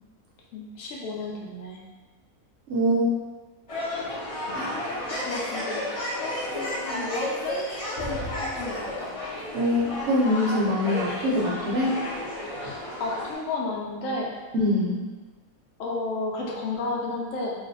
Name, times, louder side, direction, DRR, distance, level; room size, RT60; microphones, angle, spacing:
voice 1, 0.5-1.8 4.5-5.8 6.2-9.2 12.5-14.3 15.8-17.5, left 2 dB, 65° left, -3 dB, 1.0 m, -33 dB
voice 2, 2.7-3.1 4.5-4.7 9.5-12.0 14.5-15.0, left 1 dB, 65° right, -5 dB, 0.8 m, -24 dB
sound 1, 3.7-13.3, left 1 dB, 45° left, 0.4 m, -32 dB
2.5 x 2.3 x 3.9 m, 1.3 s
omnidirectional pair, 1.6 m